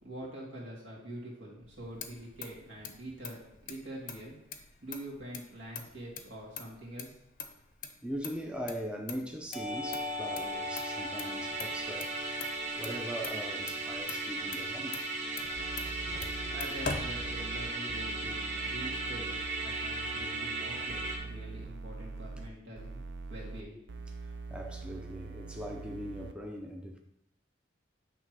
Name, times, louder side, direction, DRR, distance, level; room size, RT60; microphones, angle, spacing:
voice 1, 0.0-4.4 4.8-7.2 16.5-23.0 23.3-23.8, right 1 dB, 80° right, 2.2 m, -45 dB
Motor vehicle (road), 1.6-17.8, left 5 dB, 45° left, 0.6 m, -45 dB
voice 2, 8.0-12.1 12.7-15.0 16.1-16.6 24.2-27.0, equal, 5° right, 0.4 m, -41 dB
Musical instrument, 9.5-21.2, right 2 dB, 40° right, 1.2 m, -36 dB
sound 1, 15.5-22.5 22.7-23.6 23.9-26.3, right 3 dB, 65° right, 0.4 m, -43 dB
8.1 x 3.4 x 4.6 m
head